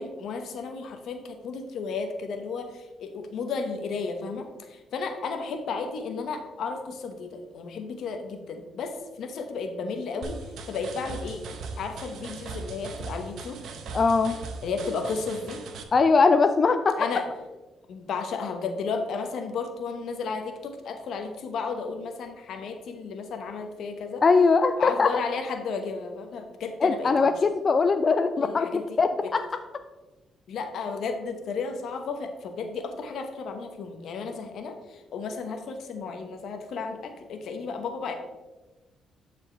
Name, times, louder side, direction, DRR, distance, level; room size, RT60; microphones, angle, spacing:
voice 1, 0.0-10.4 10.7-11.4 11.8-13.6 14.6-15.6 16.9-17.3 17.9-24.2 24.8-27.3 28.4-28.9 29.2-29.3 30.5-38.1, left 4 dB, 70° left, 6 dB, 1.0 m, -33 dB
sound 1, 10.2-15.8, right 4 dB, 70° right, 0.9 m, -39 dB
voice 2, 13.9-14.4 15.9-17.0 24.2-25.1 26.8-28.7 29.0-29.4, left 4 dB, 40° left, 8 dB, 0.4 m, -21 dB
12.0 x 4.4 x 3.3 m, 1.2 s
cardioid pair, 90°, 0 cm